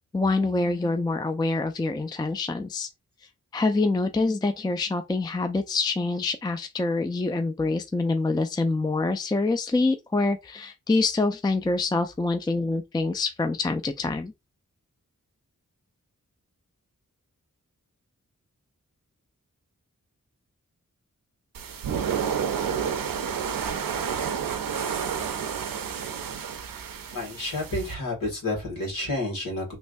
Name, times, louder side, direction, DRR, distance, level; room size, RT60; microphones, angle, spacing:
voice 1, 0.1-2.9 3.5-14.3, left 3 dB, 15° left, 0.3 m, -26 dB
sound 1, 21.5-27.9, right 7 dB, 85° right, 0.5 m, -30 dB
voice 2, 27.1-29.7, left 1 dB, 75° left, 2.1 m, -30 dB
3.3 x 3.1 x 2.6 m
wide cardioid pair, 70°, 33 cm